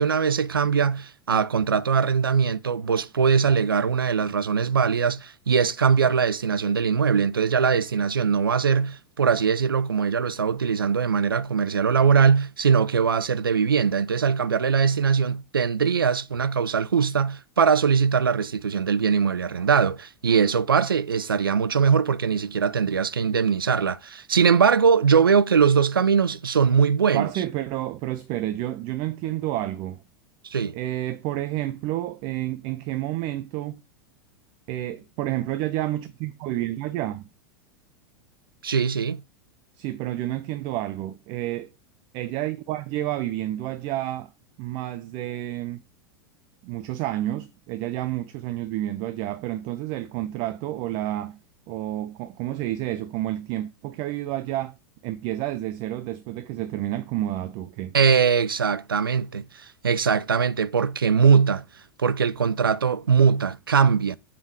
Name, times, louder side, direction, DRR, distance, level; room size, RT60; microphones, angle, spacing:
voice 1, 0.0-27.3 30.4-30.8 38.6-39.2 57.9-61.6 62.0-64.2, right 6 dB, 80° right, 0.5 m, -21 dB
voice 2, 27.1-30.0 30.7-33.8 34.7-37.2 39.8-41.7 42.1-44.3 44.6-45.8 46.6-51.4 51.7-54.8 55.0-58.0, right 14 dB, 40° right, 0.7 m, -30 dB
7.4 x 5.2 x 4.7 m
figure-of-eight pair, 90°, 12 cm